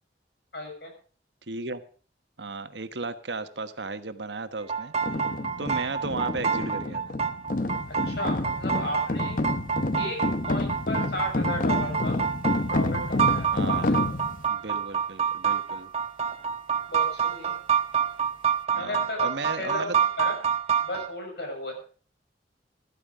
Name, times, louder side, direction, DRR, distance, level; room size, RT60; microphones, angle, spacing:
voice 1, 0.5-0.9 8.0-9.4 10.0-12.2 12.7-14.1 16.9-17.5 18.7-19.3 19.6-20.4 20.8-21.8, left 1 dB, 70° left, 2 dB, 6.5 m, -35 dB
voice 2, 1.5-1.8 2.4-4.9 5.6-7.0 13.5-13.9 14.5-15.9 18.8-20.0, right 3 dB, 80° right, 10 dB, 1.3 m, -35 dB
sound 1, 4.6-21.1, right 7 dB, 35° right, 1.2 m, -28 dB
sound 2, 5.0-14.5, left 2 dB, 50° left, 0.9 m, -29 dB
15.0 x 13.5 x 4.9 m, 0.41 s
head